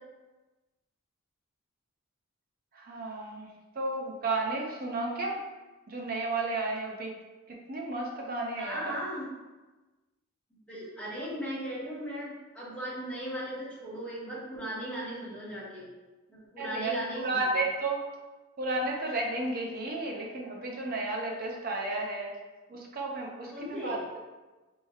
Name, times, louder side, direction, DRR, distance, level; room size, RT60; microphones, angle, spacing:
voice 1, 2.7-5.4 5.9-7.1 7.5-8.9 16.6-17.0 17.2-18.0 18.6-22.3 22.7-24.2, right 2 dB, 45° right, -1 dB, 0.6 m, -33 dB
voice 2, 8.6-9.3 10.7-15.9 16.3-17.4 23.5-24.0, equal, 5° left, -10 dB, 1.2 m, -37 dB
4.3 x 3.1 x 2.3 m, 1.2 s
head